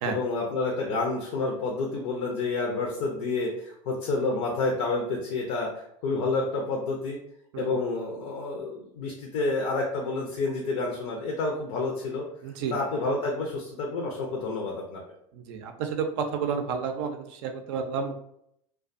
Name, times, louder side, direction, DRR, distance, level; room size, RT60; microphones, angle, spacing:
voice 1, 0.1-7.2 7.6-12.2 12.7-15.0, left 3 dB, 60° left, 0 dB, 0.6 m, -29 dB
voice 2, 12.4-12.8 15.3-18.2, right 6 dB, 60° right, 6 dB, 0.4 m, -31 dB
2.4 x 2.2 x 2.4 m, 0.73 s
hypercardioid pair, 85°, 17 cm